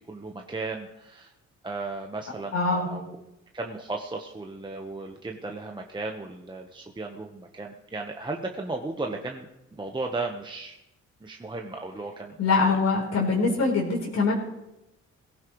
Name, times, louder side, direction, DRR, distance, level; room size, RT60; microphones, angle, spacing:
voice 1, 0.1-1.3 1.6-3.2 3.5-10.8 11.2-12.4 12.7-12.8, right 3 dB, 15° right, 2 dB, 1.1 m, -35 dB
voice 2, 2.5-2.9 12.4-14.3, left 4 dB, 60° left, -3 dB, 4.0 m, -23 dB
18.5 x 16.0 x 3.1 m, 0.92 s
cardioid pair, 90°, 30 cm